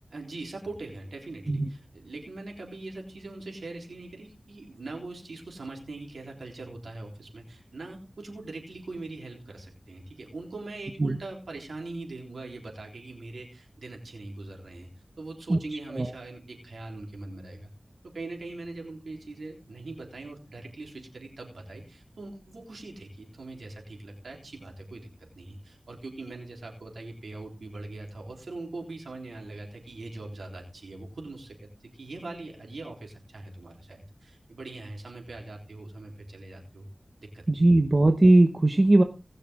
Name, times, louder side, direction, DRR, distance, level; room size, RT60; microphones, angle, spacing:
voice 1, 0.1-14.9 15.2-17.7 18.1-25.1 25.4-31.6 31.9-36.9 37.2-37.7, right 2 dB, 85° right, 1 dB, 3.8 m, -41 dB
voice 2, 37.5-39.0, right 2 dB, 40° right, 6 dB, 1.0 m, -19 dB
19.5 x 6.7 x 3.7 m, 0.31 s
wide cardioid pair, 50°, 0 cm